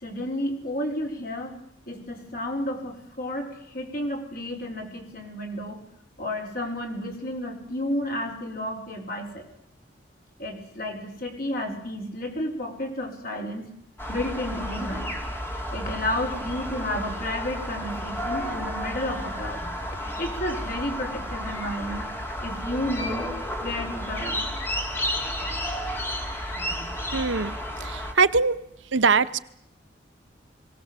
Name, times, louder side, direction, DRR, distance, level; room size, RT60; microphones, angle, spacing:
voice 1, 0.0-1.6 1.9-5.8 6.2-9.4 10.4-13.7 14.1-15.2 15.7-19.6 20.2-22.1 22.4-23.3 23.6-24.4, left 1 dB, 50° left, 2 dB, 4.4 m, -31 dB
sound 1, 14.0-28.1, equal, 10° left, 2.8 m, -32 dB
voice 2, 27.1-28.6 28.9-29.4, right 4 dB, 75° right, 13 dB, 0.8 m, -22 dB
21.5 x 17.5 x 7.5 m, 0.74 s
head